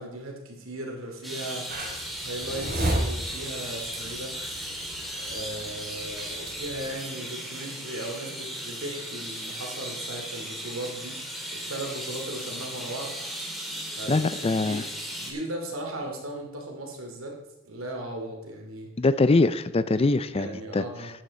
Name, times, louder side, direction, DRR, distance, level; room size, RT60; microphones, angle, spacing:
voice 1, 0.0-1.7 2.2-4.3 5.2-11.2 11.5-13.1 14.0-14.8 15.2-17.4 17.6-18.9 20.3-21.1, right 1 dB, 80° right, 1 dB, 2.8 m, -37 dB
sound 1, 1.2-15.3, equal, ahead, 2.1 m, -36 dB
sound 2, 1.7-6.9, right 1 dB, 45° right, 3.2 m, -34 dB
voice 2, 14.1-14.8 19.0-20.8, left 3 dB, 30° left, 14 dB, 0.4 m, -23 dB
13.0 x 9.2 x 4.3 m, 0.89 s
head